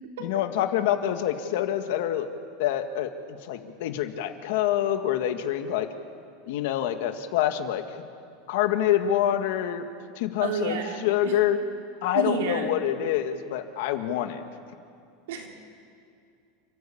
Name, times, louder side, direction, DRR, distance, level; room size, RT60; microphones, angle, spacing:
voice 1, 0.2-2.3 2.6-5.9 6.4-8.0 8.5-9.8 10.1-11.6 12.0-14.4, left 11 dB, 60° left, 7 dB, 1.7 m, -26 dB
voice 2, 10.4-11.0 12.1-12.7 15.3-15.5, right 5 dB, 80° right, 2 dB, 3.6 m, -29 dB
29.5 x 13.0 x 8.6 m, 2.4 s
supercardioid pair, 175°, 0 cm